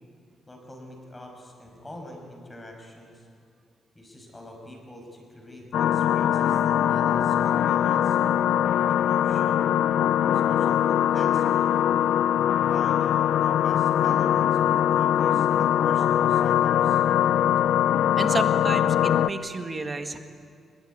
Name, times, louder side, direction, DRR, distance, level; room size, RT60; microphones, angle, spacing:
voice 1, 0.5-3.3 3.9-8.2 8.9-9.7 10.2-11.7 12.5-17.0, left 1 dB, 15° left, 2 dB, 5.8 m, -44 dB
sound 1, 5.7-19.3, left 10 dB, 75° left, 0.7 m, -22 dB
voice 2, 18.2-20.2, right 3 dB, 25° right, 7 dB, 1.8 m, -31 dB
23.5 x 21.5 x 9.8 m, 2.3 s
cardioid pair, 130°, 0 cm